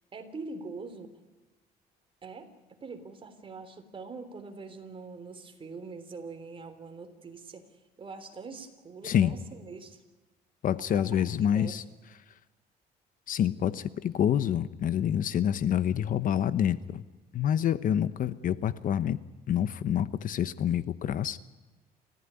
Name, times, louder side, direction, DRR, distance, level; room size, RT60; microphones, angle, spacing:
voice 1, 0.1-1.1 2.2-2.5 2.8-10.0 10.9-11.8, right 4 dB, 30° right, 7 dB, 3.4 m, -43 dB
voice 2, 10.6-11.8 13.3-17.0 17.3-19.2 19.5-21.4, left 9 dB, 55° left, 14 dB, 1.0 m, -27 dB
29.0 x 15.5 x 9.8 m, 1.2 s
cardioid pair, 110°, 17 cm